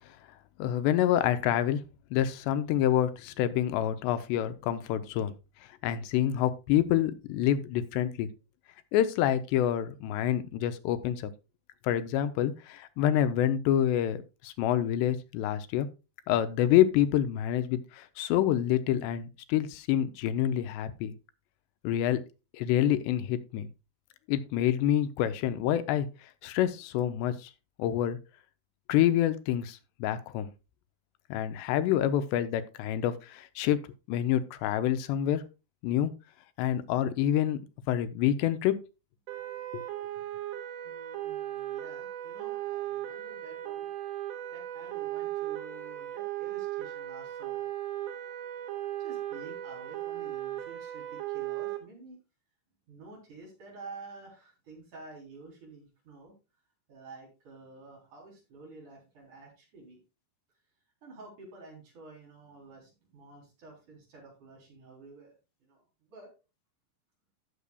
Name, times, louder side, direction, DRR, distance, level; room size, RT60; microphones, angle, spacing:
voice 1, 0.6-1.8 2.1-5.3 5.8-8.3 8.9-11.3 11.8-15.9 16.3-21.1 21.8-22.2 22.6-23.7 24.3-26.1 26.4-27.5 27.8-28.2 28.9-30.5 31.3-33.8 34.1-35.4 35.8-36.1 36.6-38.8 39.7-39.9, left 11 dB, 90° left, 11 dB, 2.8 m, -27 dB
sound 1, 39.3-51.8, right 13 dB, 70° right, 2.6 m, -37 dB
voice 2, 40.8-43.9 44.5-47.6 49.0-52.2 52.9-56.3 56.9-60.0 61.0-66.3, right 3 dB, 45° right, -1 dB, 4.8 m, -50 dB
16.0 x 6.8 x 2.3 m, 0.28 s
omnidirectional pair, 4.9 m